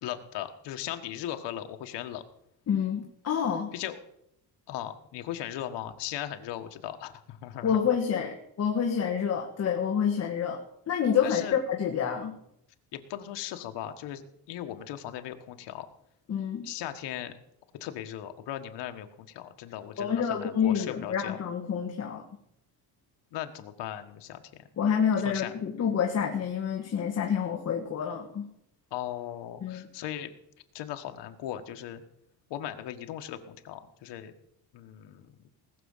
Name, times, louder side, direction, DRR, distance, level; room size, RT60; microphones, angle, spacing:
voice 1, 0.0-2.2 3.7-4.0 4.7-7.8 11.2-11.6 12.9-14.2 14.5-15.9 16.6-17.3 17.7-21.4 23.3-24.7 25.2-25.5 28.9-30.3 30.7-32.0 32.5-34.3 34.7-35.3, left 11 dB, 85° left, 7 dB, 1.5 m, -38 dB
voice 2, 2.7-3.7 7.6-10.6 10.9-12.4 16.3-16.6 20.0-22.2 24.8-28.5 29.6-29.8, left 7 dB, 40° left, 2 dB, 1.6 m, -28 dB
19.0 x 6.5 x 7.3 m, 0.75 s
cardioid pair, 160°, 41 cm